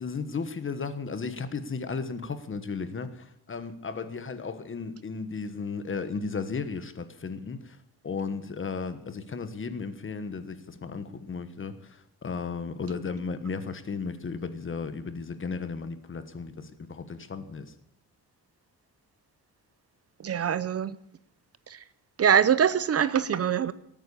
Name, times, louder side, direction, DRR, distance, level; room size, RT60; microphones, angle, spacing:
voice 1, 0.0-7.8 8.0-17.7, left 5 dB, 30° left, 1.3 m, -35 dB
voice 2, 20.2-20.9 22.2-23.7, right 8 dB, 40° right, 0.7 m, -23 dB
19.0 x 9.0 x 8.5 m
cardioid pair, 145°, 38 cm